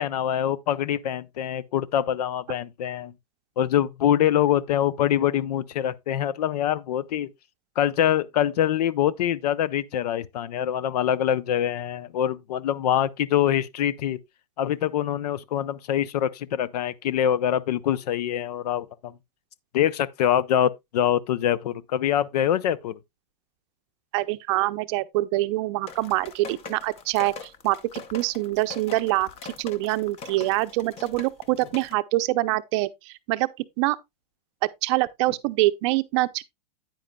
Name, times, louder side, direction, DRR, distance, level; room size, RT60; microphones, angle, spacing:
voice 1, 0.0-3.1 3.6-7.3 7.8-14.2 14.6-19.1 19.7-23.0, left 10 dB, 75° left, 0.6 m, -24 dB
voice 2, 24.1-33.5 33.8-34.0 34.8-36.4, right 19 dB, 45° right, 0.6 m, -25 dB
sound 1, 25.9-31.9, left 5 dB, 30° left, 0.8 m, -42 dB
9.3 x 9.1 x 2.2 m
supercardioid pair, 145°, 21 cm